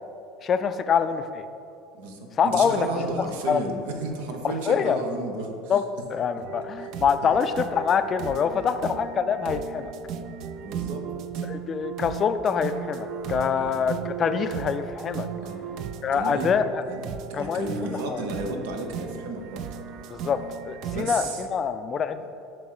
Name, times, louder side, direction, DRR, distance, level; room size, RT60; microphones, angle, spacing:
voice 1, 0.4-1.4 2.4-2.9 3.5-3.6 4.4-5.0 5.7-5.8 6.1-9.9 11.5-15.3 16.0-16.8 17.3-18.2 20.1-22.2, left 6 dB, 40° left, 10 dB, 0.3 m, -25 dB
voice 2, 1.9-5.7 6.8-6.9 8.5-8.8 10.6-11.0 11.3-11.4 13.6-13.8 15.4-15.7 16.1-16.5 16.8-19.7 20.9-21.4, right 2 dB, 80° right, 3 dB, 0.8 m, -33 dB
sound 1, 6.4-21.0, right 8 dB, 60° right, 0.3 m, -36 dB
7.3 x 3.1 x 4.7 m, 2.6 s
supercardioid pair, 95°, 0 cm